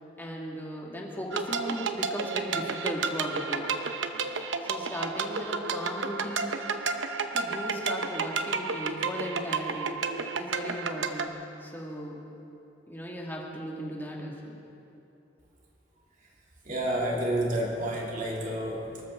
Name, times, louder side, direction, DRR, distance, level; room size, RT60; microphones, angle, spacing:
voice 1, 0.2-3.7 4.6-6.6 7.3-10.0 10.4-12.2 12.9-14.6, equal, 10° left, -2 dB, 2.3 m, -37 dB
sound 1, 1.3-11.3, right 4 dB, 70° right, 0.8 m, -31 dB
voice 2, 16.6-19.0, right 1 dB, 45° right, -3 dB, 3.0 m, -30 dB
24.0 x 13.5 x 3.9 m, 2.8 s
head